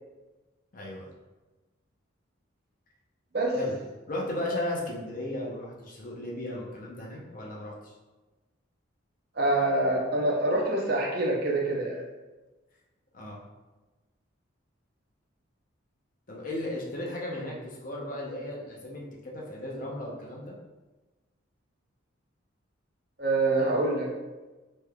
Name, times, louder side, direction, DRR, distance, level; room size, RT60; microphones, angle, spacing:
voice 1, 0.7-1.1 3.6-3.8 4.1-7.9 13.1-13.4 16.3-20.6, left 1 dB, 40° left, -2 dB, 0.6 m, -35 dB
voice 2, 9.3-12.0 23.2-24.1, right 2 dB, 50° right, -2 dB, 0.6 m, -25 dB
3.5 x 3.1 x 2.2 m, 1.2 s
head